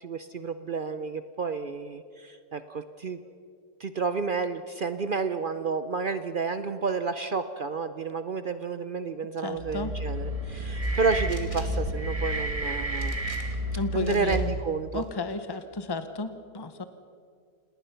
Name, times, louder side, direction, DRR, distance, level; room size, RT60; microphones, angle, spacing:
voice 1, 0.0-3.2 3.8-13.2 13.9-15.0, right 4 dB, 70° right, 11 dB, 0.4 m, -30 dB
voice 2, 9.4-9.9 13.8-14.5 14.9-16.8, left 3 dB, 35° left, 10 dB, 0.4 m, -33 dB
sound 1, 9.6-14.9, right 1 dB, 25° right, 1.2 m, -31 dB
sound 2, 10.8-11.8 12.9-13.7 14.0-14.4 14.9-15.6, left 1 dB, 20° left, 2.7 m, -48 dB
28.0 x 19.0 x 5.7 m, 2.3 s
omnidirectional pair, 1.8 m